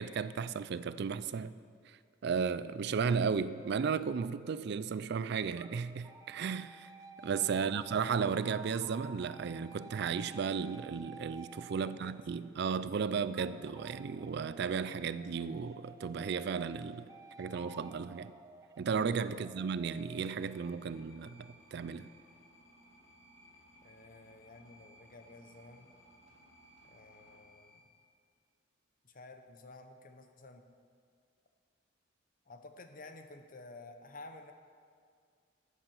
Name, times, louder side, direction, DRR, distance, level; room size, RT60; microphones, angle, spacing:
voice 1, 0.0-1.6 1.9-6.9 7.2-17.1 17.4-18.3 18.8-22.1, right 6 dB, 60° right, 0.4 m, -34 dB
sound 1, 3.5-5.1 5.6-12.7 13.3-20.8, right 3 dB, 20° right, 0.6 m, -53 dB
voice 2, 11.8-12.2 19.3-19.6 23.8-25.9 26.8-27.8 29.0-30.6 32.5-34.5, left 2 dB, 45° left, 1.0 m, -52 dB
sound 2, 19.9-27.8, equal, 85° left, 3.4 m, -61 dB
13.0 x 8.4 x 7.1 m
head